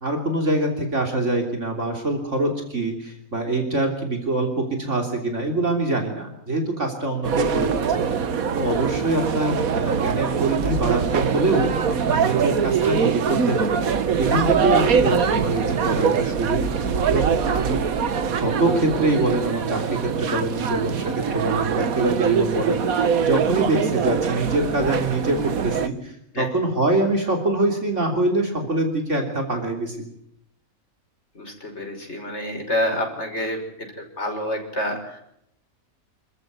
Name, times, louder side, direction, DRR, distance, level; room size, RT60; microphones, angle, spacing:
voice 1, 0.0-8.1 8.5-17.8 18.3-30.1, right 2 dB, 55° right, 3 dB, 3.6 m, -24 dB
sound 1, 7.2-25.9, right 6 dB, 75° right, 1.7 m, -23 dB
voice 2, 31.3-35.2, left 1 dB, 50° left, 2 dB, 6.1 m, -28 dB
27.5 x 14.5 x 9.3 m, 0.76 s
omnidirectional pair, 1.5 m